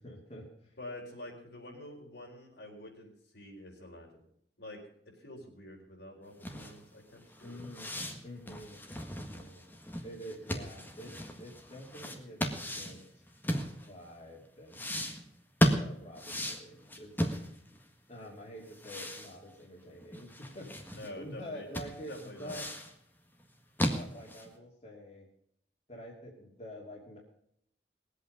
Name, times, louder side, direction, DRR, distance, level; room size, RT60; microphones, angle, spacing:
voice 1, 0.0-0.7 7.4-7.9 8.2-8.8 9.1-9.6 10.0-13.1 13.9-14.9 15.6-17.3 18.1-22.7 23.9-25.3 25.9-27.2, equal, 35° left, -2 dB, 2.7 m, -47 dB
voice 2, 0.8-4.2 4.6-4.8 5.2-7.6 20.9-21.7 22.1-22.6, left 1 dB, 70° left, -1 dB, 4.7 m, -47 dB
sound 1, 6.4-14.1 14.7-17.9 18.1-18.2 18.7-21.1 21.4-21.5 21.7-22.9 23.4-24.5, equal, 10° left, 1.7 m, -35 dB
21.0 x 8.4 x 5.3 m, 0.70 s
head